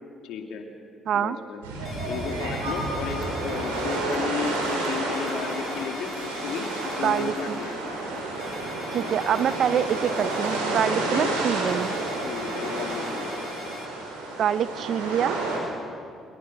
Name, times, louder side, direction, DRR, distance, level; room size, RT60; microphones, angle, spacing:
voice 1, 0.2-0.6 1.1-1.6 2.1-7.8 11.0-11.4 12.2-13.3, left 6 dB, 70° left, 3 dB, 2.5 m, -33 dB
voice 2, 1.1-1.4 7.0-7.6 8.9-11.9 14.4-15.4, right 9 dB, 60° right, 16 dB, 0.6 m, -25 dB
sound 1, 1.6-15.6, right 2 dB, 90° right, 4.7 m, -30 dB
sound 2, 1.9-4.1 5.1-7.3 8.4-10.6 11.7-13.9, left 3 dB, 35° left, 2.8 m, -44 dB
sound 3, 2.5-9.8, left 1 dB, 15° left, 4.3 m, -46 dB
25.0 x 21.5 x 6.3 m, 2.3 s
hypercardioid pair, 50°, 0 cm